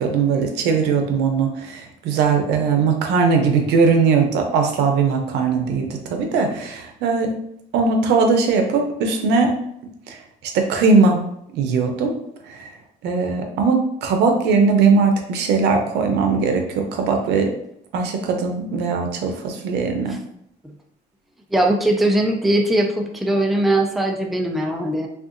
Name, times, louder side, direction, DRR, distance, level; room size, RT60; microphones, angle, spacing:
voice 1, 0.0-7.3 7.7-9.5 10.1-10.2 10.5-11.2 11.5-12.1 12.5-12.7 13.0-17.5 17.9-20.2, right 4 dB, 80° right, 4 dB, 0.6 m, -19 dB
voice 2, 21.5-25.1, right 1 dB, ahead, 2 dB, 0.3 m, -20 dB
3.6 x 2.4 x 2.5 m, 0.75 s
cardioid pair, 110°, 17 cm